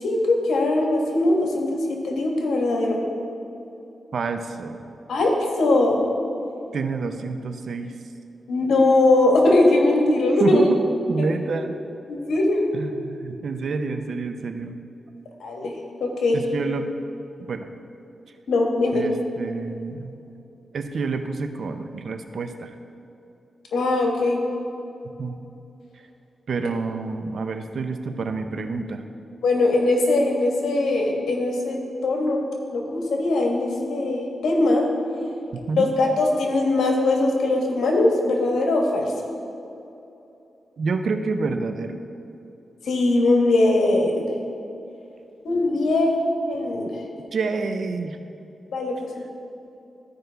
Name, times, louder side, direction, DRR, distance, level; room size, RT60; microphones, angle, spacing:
voice 1, 0.0-1.7 2.0-3.0 5.1-6.0 8.5-10.6 11.6-11.7 12.1-12.7 15.4-15.7 16.0-16.4 18.5-19.0 23.7-24.4 29.4-32.4 32.7-34.9 35.8-39.1 42.9-44.2 45.4-46.2 46.5-46.9 48.7-49.0, left 2 dB, 90° left, 0 dB, 1.4 m, -20 dB
voice 2, 4.1-4.9 6.7-7.9 10.4-10.8 11.1-11.8 12.7-14.7 16.3-16.9 17.5-17.7 18.9-20.2 20.7-22.8 25.2-25.4 26.5-29.0 35.5-35.9 40.8-42.0 47.3-48.2, right 4 dB, 70° right, 7 dB, 0.6 m, -28 dB
14.0 x 5.2 x 3.4 m, 2.8 s
cardioid pair, 70°, 0 cm